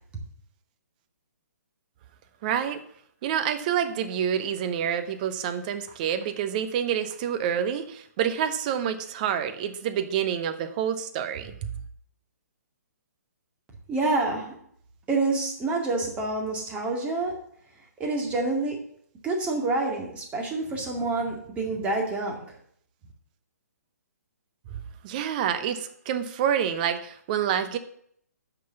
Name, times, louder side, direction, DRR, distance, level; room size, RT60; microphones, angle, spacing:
voice 1, 2.4-2.8 3.2-11.5 24.7-27.8, right 9 dB, 30° right, 10 dB, 0.9 m, -28 dB
voice 2, 13.9-14.6 15.1-17.4 17.8-18.8 19.2-22.6, right 3 dB, 15° right, 0 dB, 2.1 m, -28 dB
9.4 x 6.1 x 6.9 m, 0.66 s
figure-of-eight pair, 130°, 9 cm